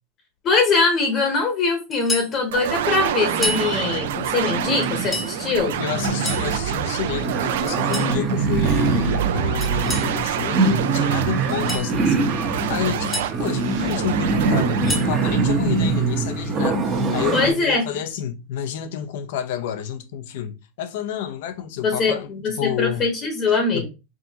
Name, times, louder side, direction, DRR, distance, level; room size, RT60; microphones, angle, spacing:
voice 1, 0.4-5.7 17.3-17.8 21.8-23.9, left 4 dB, 35° left, 1.0 m, -22 dB
sound 1, 1.9-2.3 3.3-3.7 4.8-5.3 6.0-6.5 7.7-8.1 9.6-10.1 11.4-11.9 12.8-13.3 14.6-15.1, left 2 dB, 10° left, 0.8 m, -30 dB
sound 2, 2.5-16.4, right 11 dB, 85° right, 0.4 m, -27 dB
sound 3, 2.9-17.5, right 3 dB, 30° right, 1.0 m, -24 dB
voice 2, 5.8-12.4 12.7-23.1 23.7-23.9, left 10 dB, 70° left, 0.7 m, -29 dB
4.9 x 2.5 x 2.8 m
supercardioid pair, 140°, 0 cm